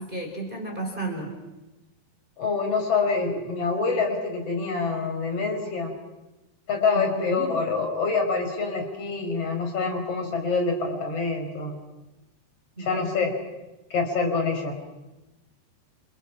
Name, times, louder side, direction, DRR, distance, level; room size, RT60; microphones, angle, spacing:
voice 1, 0.0-1.3 6.9-7.6 12.8-13.2, right 2 dB, 10° right, 2 dB, 4.5 m, -33 dB
voice 2, 2.4-5.9 6.7-11.7 12.8-13.4 13.9-14.8, left 4 dB, 40° left, 4 dB, 5.6 m, -26 dB
29.5 x 28.5 x 6.1 m, 1.0 s
omnidirectional pair, 4.5 m